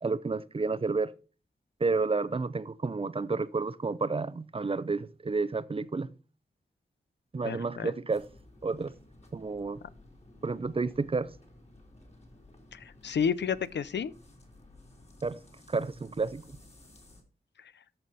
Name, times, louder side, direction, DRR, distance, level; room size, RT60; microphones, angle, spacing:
voice 1, 0.0-1.1 1.8-6.1 7.3-8.2 8.6-8.9 9.3-9.8 10.4-11.3 15.2-15.4 15.7-16.4, right 4 dB, 30° right, 0.6 m, -30 dB
voice 2, 7.4-7.9 12.7-14.1 17.6-17.7, left 7 dB, 85° left, 0.6 m, -31 dB
sound 1, 8.1-17.2, left 1 dB, 40° left, 3.0 m, -55 dB
14.0 x 5.6 x 4.1 m
wide cardioid pair, 110°, 18 cm